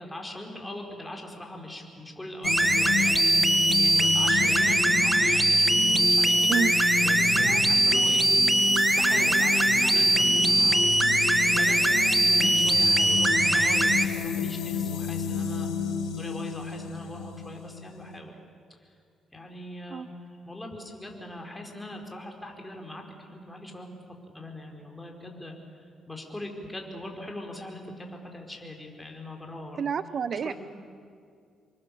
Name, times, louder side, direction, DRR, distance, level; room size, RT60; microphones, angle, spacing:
voice 1, 0.0-3.1 3.5-6.5 7.0-8.3 8.9-11.0 11.5-15.7 16.1-18.3 19.3-20.1 20.4-23.9 24.3-25.6 26.1-29.8 30.4-30.5, left 1 dB, 10° left, 2 dB, 4.7 m, -41 dB
sound 1, 2.4-18.2, left 7 dB, 90° left, 2.1 m, -31 dB
sound 2, 2.4-14.1, right 1 dB, 10° right, 1.4 m, -22 dB
voice 2, 29.8-30.5, right 7 dB, 55° right, 14 dB, 0.7 m, -28 dB
28.5 x 24.0 x 7.0 m, 2.2 s
cardioid pair, 90°, 0 cm